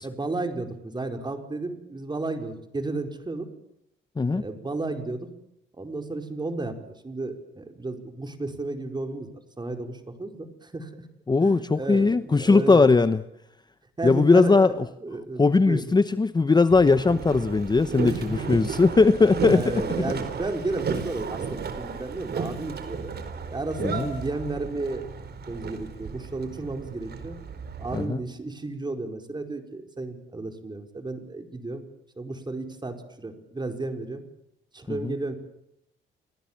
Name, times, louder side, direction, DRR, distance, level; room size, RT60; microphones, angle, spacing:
voice 1, 0.0-3.5 4.3-5.3 5.7-9.3 9.6-11.0 11.4-13.0 14.0-15.8 18.0-18.4 18.8-19.0 19.4-23.1 23.5-25.1 25.5-27.4 27.8-31.8 32.2-34.2 34.7-35.4, right 2 dB, 20° right, 6 dB, 4.8 m, -33 dB
voice 2, 11.3-13.2 14.0-14.7 15.4-19.7 23.8-24.1 27.9-28.2 34.9-35.1, left 3 dB, 20° left, 13 dB, 0.9 m, -19 dB
Boat Water vehicle, 16.7-28.1, right 5 dB, 55° right, 4.5 m, -34 dB
29.5 x 21.0 x 7.5 m, 0.81 s
cardioid pair, 90°, 20 cm